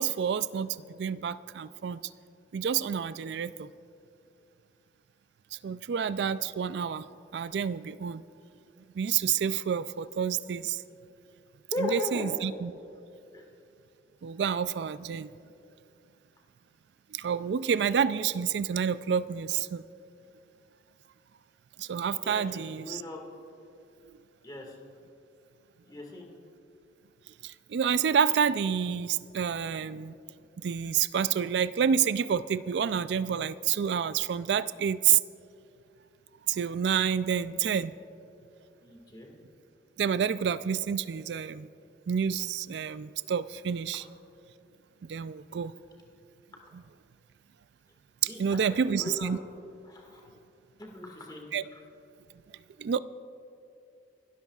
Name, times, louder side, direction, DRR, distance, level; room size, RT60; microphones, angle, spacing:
voice 1, 0.0-2.0 2.5-3.7 5.6-7.1 7.3-8.2 9.0-10.8 11.8-12.7 14.2-15.3 17.1-19.8 21.8-23.0 27.4-30.1 30.6-35.2 36.5-37.9 40.0-41.7 42.1-44.1 45.1-45.7 46.7-46.8 48.2-49.4 51.5-51.6 52.8-53.0, right 7 dB, 70° right, 15 dB, 0.3 m, -28 dB
voice 2, 11.7-12.4 13.3-13.4 22.2-23.2 24.4-24.7 25.8-26.3 38.8-39.3 48.2-49.4 49.9-50.2 50.8-51.4, left 2 dB, 25° left, 0 dB, 1.9 m, -37 dB
27.5 x 12.5 x 2.4 m, 2.7 s
head